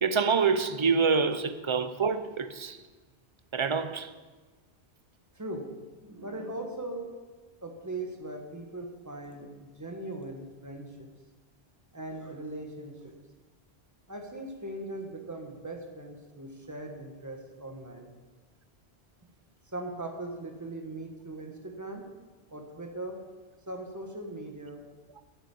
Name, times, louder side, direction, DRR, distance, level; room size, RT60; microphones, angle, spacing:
voice 1, 0.0-2.8 3.5-4.1, right 5 dB, 35° right, 0.5 m, -26 dB
voice 2, 5.3-7.1 7.6-11.1 11.9-13.1 14.1-18.1 19.7-22.1 22.5-23.2 23.7-24.8, right 2 dB, 15° right, 1.5 m, -40 dB
10.0 x 8.1 x 8.5 m
omnidirectional pair, 1.1 m